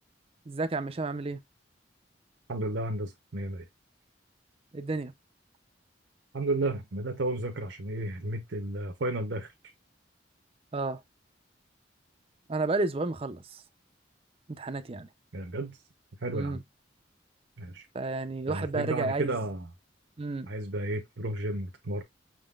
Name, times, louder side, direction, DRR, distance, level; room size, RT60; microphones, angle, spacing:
voice 1, 0.5-1.4 4.7-5.1 10.7-11.0 12.5-13.6 14.6-15.1 16.3-16.6 17.9-19.4 20.2-20.5, right 3 dB, 30° right, 0.5 m, -31 dB
voice 2, 2.5-3.6 6.3-9.5 15.3-15.7 16.2-16.6 17.6-17.9 18.5-19.7 20.5-22.0, right 2 dB, 70° right, 0.7 m, -32 dB
6.1 x 3.7 x 2.3 m
head